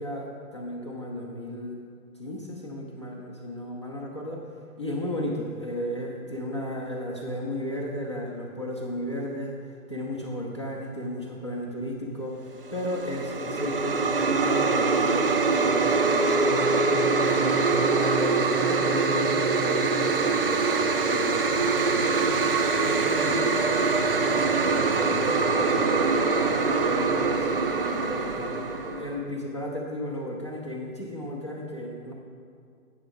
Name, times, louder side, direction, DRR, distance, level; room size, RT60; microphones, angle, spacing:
voice 1, 0.0-1.8 2.1-4.5 4.8-16.9 17.2-22.4 22.8-26.1 26.4-32.1, left 1 dB, 20° left, -3 dB, 0.5 m, -34 dB
sound 1, 12.7-29.2, right 4 dB, 40° right, 0.5 m, -24 dB
sound 2, 16.5-20.4, right 6 dB, 75° right, 0.8 m, -33 dB
8.6 x 5.9 x 5.2 m, 2.3 s
hypercardioid pair, 145°, 45 cm